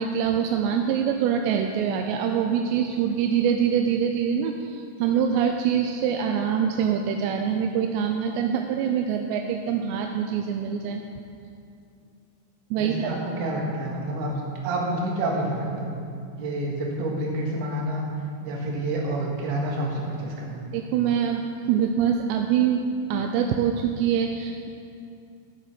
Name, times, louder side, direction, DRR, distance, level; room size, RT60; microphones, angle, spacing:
voice 1, 0.0-11.0 12.7-13.1 20.7-22.8 23.1-24.7, right 8 dB, 85° right, 3 dB, 2.7 m, -24 dB
voice 2, 12.8-15.9 16.4-18.1 18.4-20.7, right 1 dB, 65° right, -2 dB, 3.4 m, -28 dB
14.0 x 7.6 x 6.0 m, 2.5 s
omnidirectional pair, 5.3 m